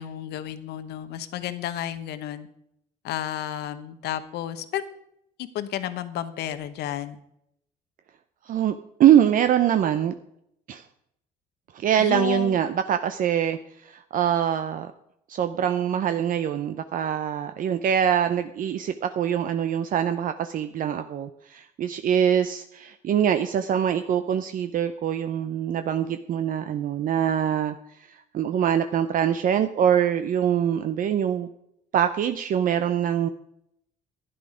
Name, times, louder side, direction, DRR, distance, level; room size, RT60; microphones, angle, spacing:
voice 1, 0.0-2.5 3.0-4.8 5.4-7.2 12.0-12.6, left 11 dB, 75° left, 12 dB, 1.0 m, -32 dB
voice 2, 8.5-10.1 10.7-10.8 11.7-14.9 15.3-27.7 28.1-31.5 31.9-33.3, right 9 dB, 55° right, 9 dB, 0.7 m, -24 dB
12.0 x 10.5 x 5.0 m, 0.76 s
cardioid pair, 110°, 17 cm